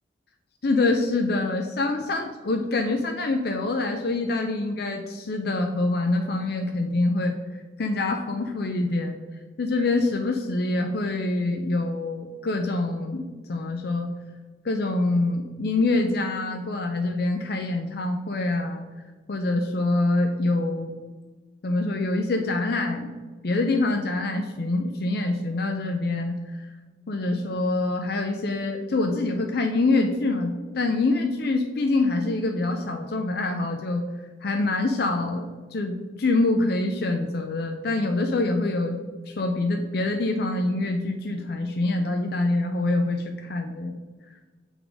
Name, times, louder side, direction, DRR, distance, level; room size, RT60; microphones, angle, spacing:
voice 1, 0.6-7.4 7.8-9.2 9.6-14.1 14.6-18.8 19.3-20.9 21.6-23.1 23.4-26.7 27.1-34.0 34.4-35.4 35.7-39.0 39.3-43.9, left 2 dB, 55° left, 4 dB, 0.5 m, -25 dB
6.9 x 3.6 x 4.7 m, 1.3 s
head